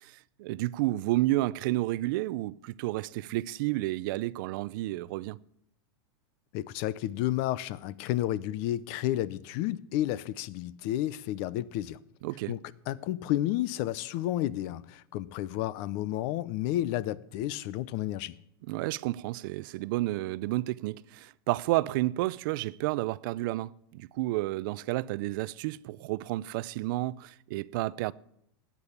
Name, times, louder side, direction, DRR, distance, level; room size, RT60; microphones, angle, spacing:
voice 1, 0.0-5.4 12.2-12.6 18.7-28.1, right 18 dB, 55° right, 0.5 m, -31 dB
voice 2, 6.5-12.0 12.5-12.6 12.9-18.3, left 14 dB, 45° left, 0.6 m, -31 dB
18.5 x 8.4 x 7.2 m
supercardioid pair, 155°, 13 cm